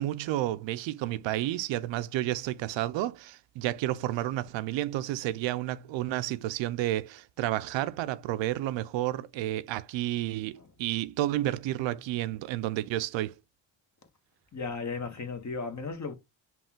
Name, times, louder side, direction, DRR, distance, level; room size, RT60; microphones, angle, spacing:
voice 1, 0.0-13.4, right 14 dB, 65° right, 0.5 m, -31 dB
voice 2, 14.5-16.1, left 4 dB, 35° left, 1.3 m, -35 dB
5.4 x 2.4 x 3.6 m
supercardioid pair, 55°, 48 cm